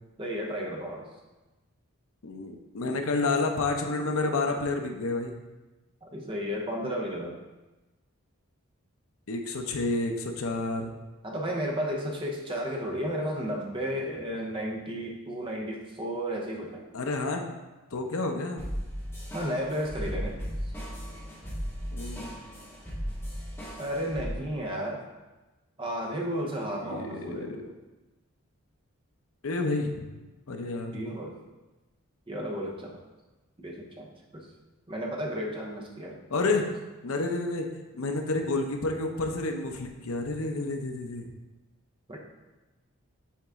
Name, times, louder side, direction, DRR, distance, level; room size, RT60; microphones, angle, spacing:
voice 1, 0.2-1.1 6.0-7.4 11.2-16.8 19.3-20.4 21.1-21.2 23.8-25.0 25.8-27.5 30.9-31.4 32.3-32.9 33.6-34.5 34.9-36.2 42.1-42.2, equal, 25° right, 0 dB, 0.8 m, -33 dB
voice 2, 2.2-5.4 9.3-10.9 16.9-17.5 17.9-18.7 21.9-22.3 26.8-27.7 29.4-30.1 30.5-31.0 36.3-36.7 37.0-37.7 37.9-41.3, left 3 dB, 75° left, 4 dB, 0.7 m, -30 dB
sound 1, 18.6-24.3, equal, 10° left, 1.4 m, -36 dB
7.3 x 4.0 x 3.6 m, 1.1 s
head